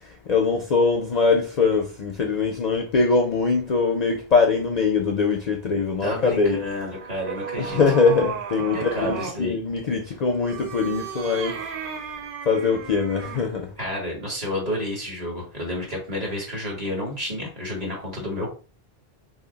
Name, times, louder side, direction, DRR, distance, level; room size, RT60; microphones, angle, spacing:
voice 1, 0.3-6.6 7.6-11.5 12.5-13.7, left 4 dB, 55° left, 0.5 m, -22 dB
voice 2, 6.0-7.8 8.7-9.6 13.8-18.5, left 1 dB, 40° right, 1.5 m, -30 dB
sound 1, 6.4-9.4 10.4-13.5, right 7 dB, 65° right, 0.7 m, -35 dB
2.8 x 2.7 x 3.8 m
omnidirectional pair, 1.0 m